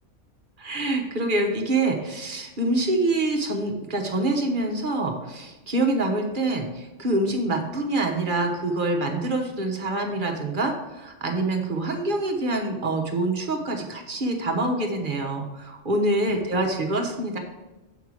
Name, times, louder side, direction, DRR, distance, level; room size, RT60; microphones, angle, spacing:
voice 1, 0.6-17.4, right 2 dB, 40° right, 3 dB, 1.1 m, -26 dB
7.3 x 5.5 x 4.8 m, 1.1 s
omnidirectional pair, 1.4 m